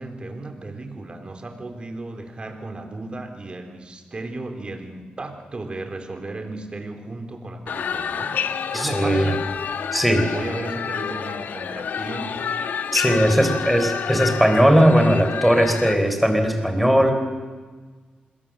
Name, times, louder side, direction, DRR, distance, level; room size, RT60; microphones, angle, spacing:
voice 1, 0.0-9.4 10.2-12.5 13.3-13.7, right 2 dB, 35° right, 5 dB, 3.8 m, -35 dB
sound 1, 7.7-15.9, left 7 dB, 80° left, 1.2 m, -29 dB
voice 2, 8.7-9.4 9.9-10.3 12.9-17.1, equal, ahead, 5 dB, 4.2 m, -18 dB
26.5 x 21.5 x 7.7 m, 1.4 s
wide cardioid pair, 105°, 3 cm